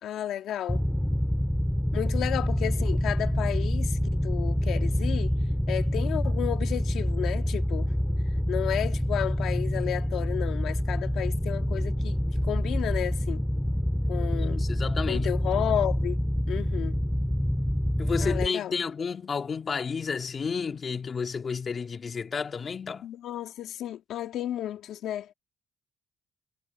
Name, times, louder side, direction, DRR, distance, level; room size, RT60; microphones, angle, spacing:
voice 1, 0.0-0.8 1.9-5.3 5.7-7.9 8.5-12.2 12.4-13.4 14.1-14.6 15.1-16.2 16.5-17.0 18.2-18.7 23.0-25.3, left 11 dB, 80° left, 2.3 m, -32 dB
sound 1, 0.7-18.5, equal, 5° left, 2.8 m, -27 dB
voice 2, 14.3-15.3 18.0-23.1, left 5 dB, 40° left, 2.4 m, -31 dB
cardioid pair, 90°, 0 cm